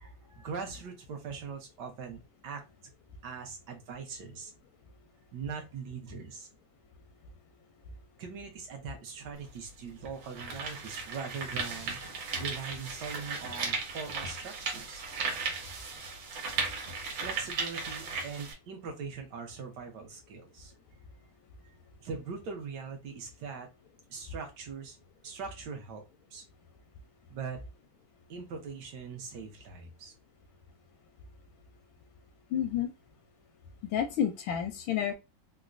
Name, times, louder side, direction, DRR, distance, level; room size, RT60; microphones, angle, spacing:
voice 1, 0.0-2.6 3.2-4.5 5.3-6.5 8.2-12.0 12.4-15.0 17.1-20.7 22.0-23.7 24.1-25.0 25.2-26.0 26.3-26.4 27.3-27.6 28.3-30.1, right 5 dB, 65° right, 3 dB, 1.3 m, -41 dB
sound 1, 9.3-9.4 10.1-18.5, right 4 dB, 85° right, 1.8 m, -36 dB
voice 2, 32.5-32.9 33.9-35.1, left 9 dB, 85° left, 4 dB, 1.4 m, -30 dB
3.8 x 2.2 x 2.5 m, 0.24 s
omnidirectional pair, 2.1 m